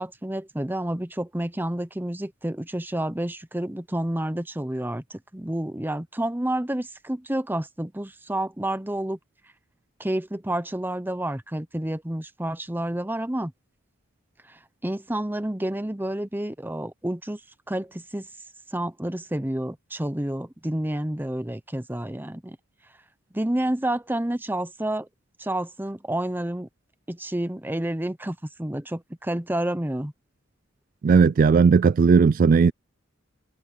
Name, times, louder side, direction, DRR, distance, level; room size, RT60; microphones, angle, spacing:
voice 1, 0.0-9.2 10.0-13.5 14.5-17.4 17.7-18.3 18.7-22.6 23.3-25.1 25.4-26.7 27.1-30.1, right 1 dB, 10° right, 0.8 m, -29 dB
voice 2, 31.0-32.7, right 5 dB, 45° right, 0.3 m, -17 dB
head